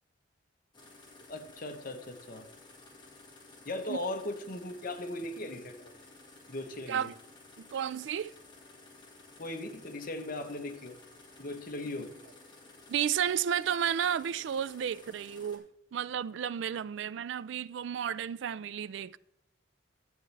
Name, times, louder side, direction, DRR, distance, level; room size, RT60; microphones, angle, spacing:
sound 1, 0.7-15.6, left 2 dB, 20° left, 1.8 m, -55 dB
voice 1, 1.3-2.5 3.7-5.9 6.5-7.1 9.4-11.0 11.4-12.1, left 1 dB, 45° left, 1.0 m, -38 dB
voice 2, 7.6-8.3 12.9-15.6 15.9-19.2, right 9 dB, 60° right, 0.3 m, -32 dB
12.0 x 7.4 x 3.3 m
head